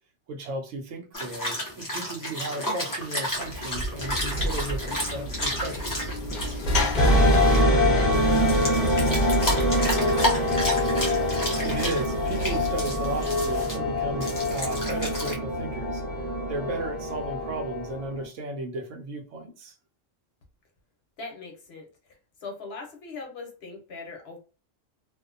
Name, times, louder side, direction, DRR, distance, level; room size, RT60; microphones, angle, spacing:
voice 1, 0.3-6.1 11.6-16.0 16.5-19.7, right 2 dB, 85° right, 1.0 m, -35 dB
sound 1, 1.1-7.6 8.1-13.8 14.2-15.3, equal, 25° left, 0.4 m, -32 dB
Sliding door / Slam, 3.4-8.8, equal, 45° left, 0.7 m, -29 dB
sound 2, 7.0-18.2, left 1 dB, ahead, 0.9 m, -24 dB
voice 2, 7.9-10.3 21.2-21.8 22.4-24.4, left 3 dB, 60° left, 1.0 m, -41 dB
2.6 x 2.1 x 2.4 m
omnidirectional pair, 1.3 m